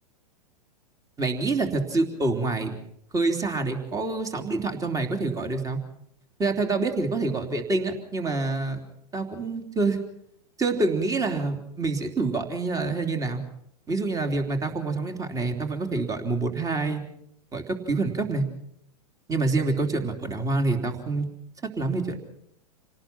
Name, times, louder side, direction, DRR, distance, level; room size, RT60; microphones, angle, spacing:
voice 1, 1.2-2.8 3.1-5.8 6.4-8.8 9.1-10.0 10.6-13.4 13.9-17.0 17.5-18.4 19.3-21.3 21.8-22.2, right 3 dB, 15° right, 5 dB, 3.3 m, -26 dB
28.0 x 18.5 x 6.0 m, 0.74 s
hypercardioid pair, 110°, 21 cm